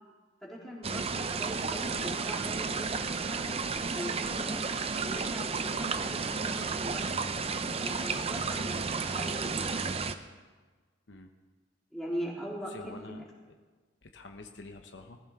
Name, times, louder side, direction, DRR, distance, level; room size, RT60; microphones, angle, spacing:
voice 1, 0.4-3.5 3.9-4.6 5.0-7.3 7.7-9.9 11.9-13.2, equal, ahead, -6 dB, 3.6 m, -41 dB
sound 1, 0.8-10.1, right 4 dB, 30° right, 0.6 m, -32 dB
voice 2, 12.7-13.2 14.0-15.2, left 2 dB, 65° left, 4 dB, 0.9 m, -47 dB
19.5 x 15.0 x 3.7 m, 1.4 s
head